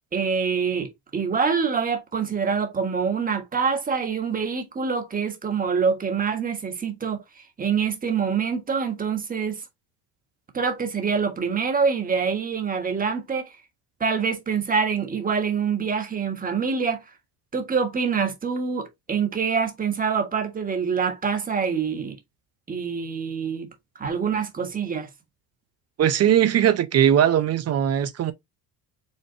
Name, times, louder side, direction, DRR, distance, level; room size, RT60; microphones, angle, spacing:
voice 1, 0.1-7.2 7.6-9.6 10.5-13.5 14.0-17.0 17.5-22.2 22.7-23.7 24.0-25.1, right 6 dB, 20° right, 1.4 m, -25 dB
voice 2, 26.0-28.3, right 10 dB, 40° right, 0.7 m, -19 dB
5.4 x 3.3 x 2.8 m
cardioid pair, 115°, 39 cm